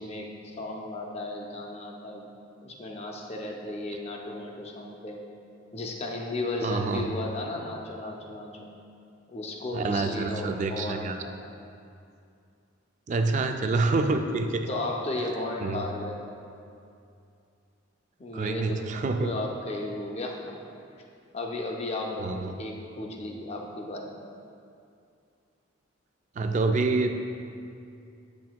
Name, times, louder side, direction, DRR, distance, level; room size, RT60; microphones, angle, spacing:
voice 1, 0.0-2.3 2.6-5.2 5.7-8.7 9.3-11.5 14.7-16.2 18.2-21.0 21.3-24.1, left 2 dB, 30° left, 0 dB, 0.5 m, -35 dB
voice 2, 6.6-7.1 9.7-11.2 13.1-14.7 15.6-15.8 18.3-19.3 22.2-22.6 26.4-27.1, right 3 dB, 35° right, 6 dB, 0.3 m, -27 dB
8.3 x 6.0 x 2.3 m, 2.5 s
head